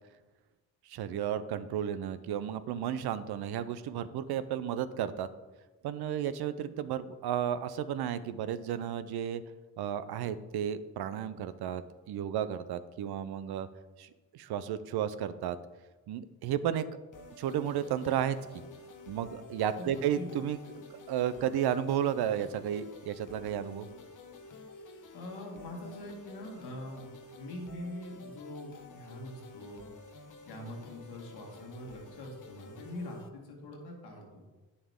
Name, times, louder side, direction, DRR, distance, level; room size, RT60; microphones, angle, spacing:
voice 1, 0.9-5.3 5.8-9.4 9.8-13.7 14.0-15.6 16.1-16.8 17.4-18.6 19.1-23.9, right 9 dB, 85° right, 13 dB, 0.6 m, -33 dB
sound 1, 17.1-33.3, left 2 dB, 55° left, 1.1 m, -51 dB
voice 2, 19.7-20.3 25.1-27.1 27.4-29.8 30.4-34.4, left 1 dB, 85° left, 0 dB, 1.9 m, -43 dB
8.9 x 6.9 x 3.6 m, 1.2 s
supercardioid pair, 50°, 38 cm